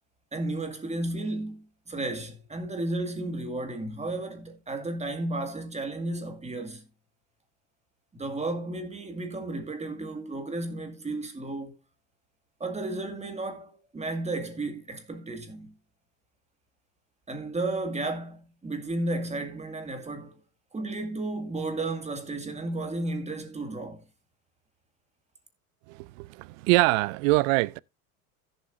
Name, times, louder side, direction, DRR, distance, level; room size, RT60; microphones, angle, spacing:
voice 1, 0.3-6.9 8.1-11.8 12.6-15.7 17.3-20.3 20.7-24.0, right 2 dB, 15° right, 2.1 m, -33 dB
voice 2, 25.9-27.8, right 22 dB, 65° right, 0.5 m, -24 dB
16.0 x 7.3 x 2.6 m
hypercardioid pair, 95°, 44 cm